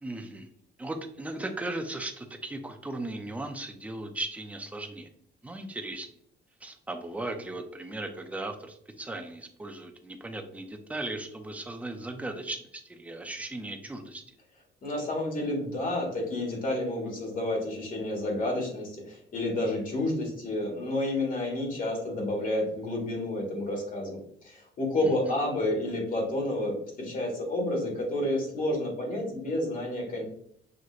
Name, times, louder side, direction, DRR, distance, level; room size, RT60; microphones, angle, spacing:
voice 1, 0.0-0.5 0.8-5.1 5.4-6.1 6.6-14.2 25.0-25.3, right 2 dB, 5° right, 4 dB, 0.4 m, -37 dB
voice 2, 14.8-30.2, left 1 dB, 45° left, 0 dB, 1.6 m, -30 dB
6.3 x 2.8 x 2.4 m, 0.67 s
cardioid pair, 155°, 20 cm